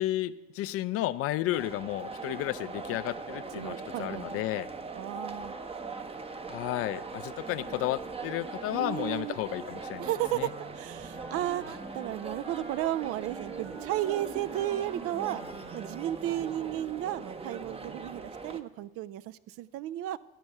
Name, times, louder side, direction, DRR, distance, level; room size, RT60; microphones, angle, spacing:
voice 1, 0.0-4.7 6.5-10.5, left 14 dB, 45° left, 14 dB, 0.4 m, -32 dB
sound 1, 1.5-18.6, right 4 dB, 20° right, 0.7 m, -41 dB
voice 2, 3.6-4.4 4.9-5.6 8.7-9.4 10.0-15.4 15.7-20.2, right 13 dB, 45° right, 17 dB, 0.4 m, -34 dB
Wind instrument woodwind instrument, 10.1-16.8, right 5 dB, 85° right, 2.0 m, -47 dB
11.0 x 5.3 x 6.9 m, 1.1 s
hypercardioid pair, 65°, 32 cm